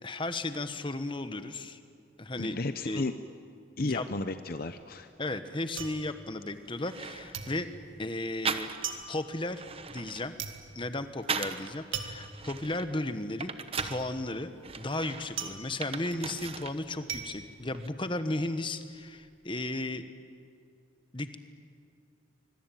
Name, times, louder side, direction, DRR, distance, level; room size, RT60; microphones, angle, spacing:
voice 1, 0.0-1.8 2.2-2.5 2.8-3.0 3.8-4.1 5.2-7.7 8.0-8.7 9.1-10.4 10.7-13.5 13.8-14.5 14.8-20.1 21.1-21.4, left 2 dB, 25° left, 10 dB, 1.2 m, -34 dB
voice 2, 2.4-3.1 3.8-5.1, left 2 dB, 50° left, 10 dB, 0.7 m, -33 dB
sound 1, 4.6-7.0 7.3-18.5 18.8-19.4, right 7 dB, 85° right, 2.0 m, -41 dB
sound 2, 6.4-6.5 6.8-7.6 8.4-9.1 9.4-11.7 12.2-14.1 14.6-16.8 17.1-17.9, right 5 dB, 30° right, 1.0 m, -38 dB
25.0 x 22.5 x 9.2 m, 2.4 s
head